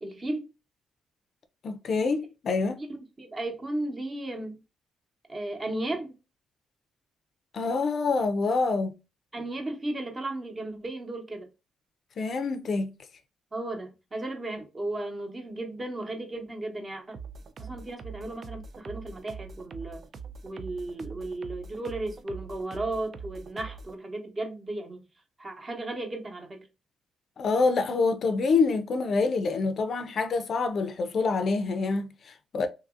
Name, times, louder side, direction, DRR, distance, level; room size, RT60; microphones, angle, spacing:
voice 1, 0.0-0.5 2.9-4.6 5.3-6.2 9.3-11.5 13.5-17.2 17.6-20.1 20.4-25.0 25.4-26.7, right 2 dB, 30° right, 0.9 m, -35 dB
voice 2, 1.6-2.8 7.5-8.9 12.2-12.9 27.4-32.7, left 4 dB, 55° left, 0.4 m, -26 dB
sound 1, 17.1-24.0, right 5 dB, 50° right, 0.3 m, -43 dB
2.8 x 2.6 x 2.4 m
cardioid pair, 90°, 0 cm